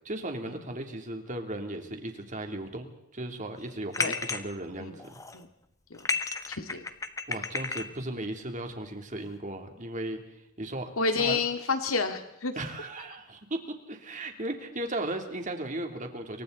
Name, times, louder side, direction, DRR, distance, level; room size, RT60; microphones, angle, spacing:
voice 1, 0.0-5.1 7.3-10.2 10.6-10.9 11.2-11.4 12.6-16.4, right 1 dB, 40° right, 4 dB, 3.2 m, -36 dB
sound 1, 3.9-4.4 5.0-5.4 5.9-7.9, left 4 dB, 15° left, 1.3 m, -32 dB
voice 2, 6.5-6.8 11.0-12.5, left 4 dB, 85° left, 7 dB, 2.2 m, -29 dB
28.5 x 24.0 x 4.1 m, 0.87 s
head